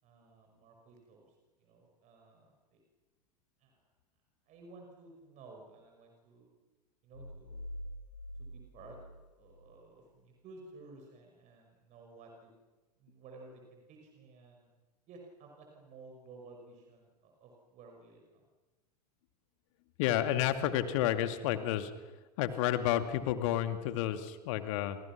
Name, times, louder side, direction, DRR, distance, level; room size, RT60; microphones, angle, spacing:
voice 1, 0.0-2.8 3.6-3.9 4.5-6.5 7.0-7.6 8.4-12.5 13.0-14.7 15.1-18.4, right 3 dB, 35° right, 2 dB, 5.7 m, -55 dB
sound 1, 7.1-9.9, equal, 85° left, 2.8 m, -46 dB
voice 2, 20.0-21.9 22.4-25.0, left 12 dB, 50° left, 9 dB, 2.3 m, -30 dB
29.5 x 27.5 x 6.0 m, 1.2 s
figure-of-eight pair, 90°, 21 cm